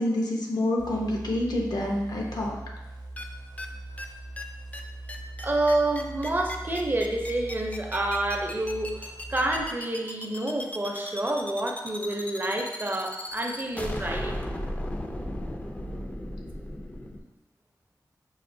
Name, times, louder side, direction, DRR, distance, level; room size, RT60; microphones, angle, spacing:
voice 1, 0.0-2.6, left 1 dB, 70° left, 0 dB, 0.6 m, -27 dB
sound 1, 0.8-9.7, right 2 dB, 80° right, 0.6 m, -41 dB
sound 2, 3.2-3.3 3.6-3.7 4.0-4.1 4.4-4.5 4.7-4.8 5.1-17.2, left 1 dB, 20° left, 0.4 m, -35 dB
voice 2, 5.4-14.4, right 1 dB, 30° right, 2 dB, 0.5 m, -28 dB
5.4 x 2.4 x 2.6 m, 0.99 s
wide cardioid pair, 75°, 7 cm